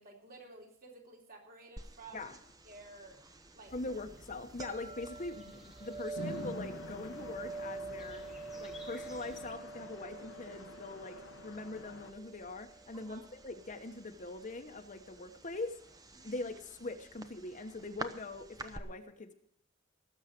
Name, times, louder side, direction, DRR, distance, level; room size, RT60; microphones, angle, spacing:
voice 1, 0.0-2.3 2.6-3.2 3.5-3.7 12.9-13.2 16.1-16.5, right 3 dB, 50° right, 0 dB, 3.4 m, -53 dB
sound 1, 1.8-18.8, right 3 dB, 20° right, 0.9 m, -48 dB
voice 2, 3.7-8.2 8.6-15.7 16.2-19.3, left 2 dB, 40° left, 7 dB, 1.0 m, -42 dB
sound 2, 3.7-9.5, left 1 dB, ahead, 1.4 m, -56 dB
Chatter / Traffic noise roadway noise / Train, 6.1-12.1, left 1 dB, 80° left, 1.0 m, -47 dB
18.5 x 7.3 x 6.6 m, 0.68 s
head